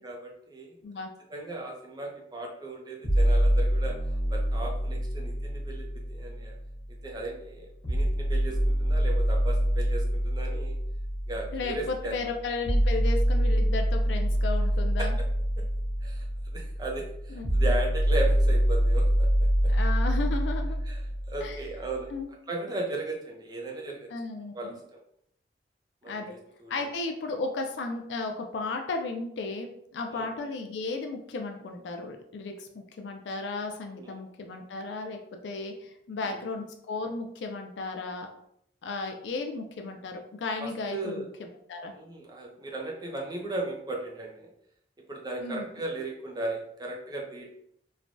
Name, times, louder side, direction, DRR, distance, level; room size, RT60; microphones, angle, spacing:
voice 1, 0.0-0.8 1.3-3.9 4.3-6.5 7.0-10.7 11.3-12.2 15.0-15.1 16.0-16.3 16.5-19.0 20.8-21.0 21.3-22.1 22.5-24.1 24.5-24.7 26.0-26.2 26.6-26.9 30.1-30.3 33.9-34.2 36.2-36.4 40.6-41.2 41.9-44.5 45.1-47.5, right 2 dB, 25° right, -1 dB, 0.5 m, -36 dB
sound 1, 3.0-7.0 7.8-21.9, equal, 70° left, 0.9 m, -26 dB
voice 2, 11.5-15.1 17.3-17.7 19.7-20.8 21.4-21.6 22.1-22.3 24.1-24.8 26.1-26.3 26.7-35.2 35.4-38.3 38.8-41.9 45.4-45.7, left 3 dB, 85° left, 4 dB, 0.4 m, -34 dB
3.2 x 2.2 x 2.5 m, 0.72 s
head